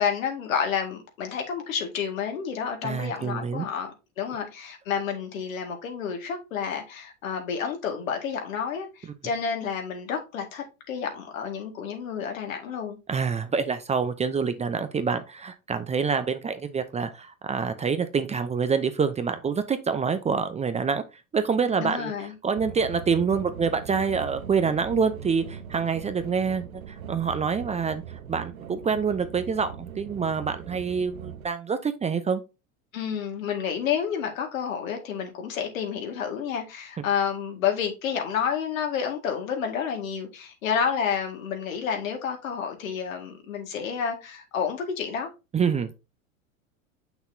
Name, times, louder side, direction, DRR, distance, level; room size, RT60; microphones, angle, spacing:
voice 1, 0.0-13.0 21.8-22.3 32.9-45.3, left 7 dB, 75° left, 2.1 m, -30 dB
voice 2, 2.8-3.7 13.1-21.0 21.3-28.0 28.3-32.4 45.5-46.0, right 5 dB, 15° right, 0.6 m, -26 dB
sound 1, 22.6-31.4, right 8 dB, 85° right, 1.0 m, -40 dB
7.0 x 6.0 x 2.7 m
hypercardioid pair, 90°, 41 cm